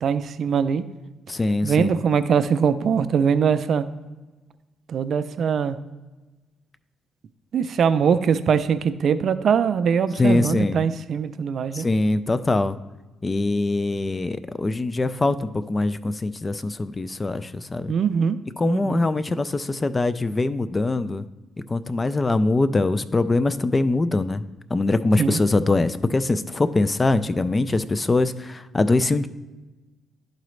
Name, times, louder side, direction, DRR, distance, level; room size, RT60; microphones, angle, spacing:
voice 1, 0.0-0.8 1.6-3.9 4.9-5.8 7.5-11.9 17.9-18.4 18.6-19.0 25.2-25.4, right 7 dB, 60° right, 12 dB, 0.3 m, -22 dB
voice 2, 1.3-2.0 10.2-10.8 11.7-12.8 13.2-17.9 18.6-21.3 21.7-24.4 24.7-29.3, left 2 dB, 25° left, 13 dB, 0.3 m, -23 dB
11.5 x 3.9 x 3.1 m, 1.2 s
cardioid pair, 90°, 0 cm